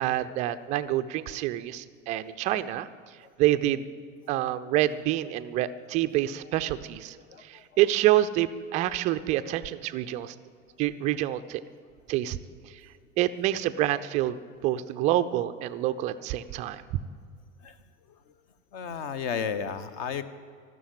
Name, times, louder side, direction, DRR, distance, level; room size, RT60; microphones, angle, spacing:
voice 1, 0.0-2.9 3.4-3.9 4.3-10.4 10.8-11.6 12.1-12.4 13.2-14.4 14.6-16.8, right 14 dB, 20° right, 12 dB, 0.3 m, -27 dB
voice 2, 7.3-7.6 17.6-17.8 18.7-20.2, left 6 dB, 45° left, 13 dB, 1.1 m, -33 dB
12.5 x 12.5 x 8.7 m, 2.1 s
figure-of-eight pair, 85°, 40 cm